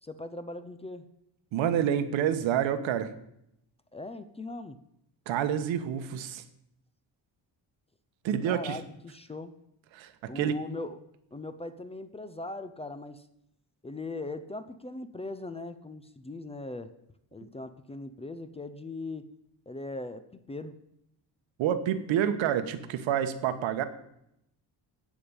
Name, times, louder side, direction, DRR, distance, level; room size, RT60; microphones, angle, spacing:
voice 1, 0.0-1.1 3.9-4.8 8.4-9.6 10.3-11.0 11.3-13.3 13.8-16.9 17.3-19.3 19.7-20.8, left 2 dB, 15° left, 11 dB, 0.4 m, -39 dB
voice 2, 1.5-3.1 5.3-6.4 8.2-8.8 9.9-10.6 21.6-23.8, right 9 dB, 90° right, 9 dB, 1.3 m, -28 dB
15.5 x 5.2 x 8.8 m, 0.79 s
cardioid pair, 165°, 45 cm